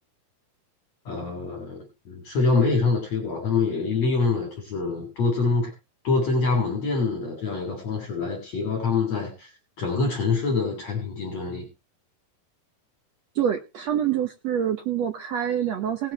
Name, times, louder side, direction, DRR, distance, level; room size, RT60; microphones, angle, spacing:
voice 1, 1.1-5.7 6.0-9.5 9.8-11.7, left 4 dB, 45° left, 3.8 m, -25 dB
voice 2, 13.4-16.1, right 9 dB, 70° right, 1.6 m, -26 dB
19.5 x 7.0 x 4.3 m
omnidirectional pair, 4.5 m